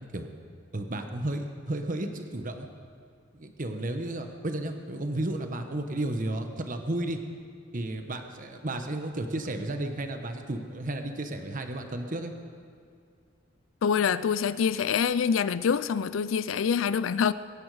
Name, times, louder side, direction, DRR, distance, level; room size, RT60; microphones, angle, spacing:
voice 1, 0.7-2.7 3.3-7.2 7.7-12.3, right 1 dB, 45° right, 1.1 m, -33 dB
voice 2, 13.8-17.3, left 7 dB, 90° left, 0.4 m, -25 dB
23.0 x 10.5 x 4.8 m
head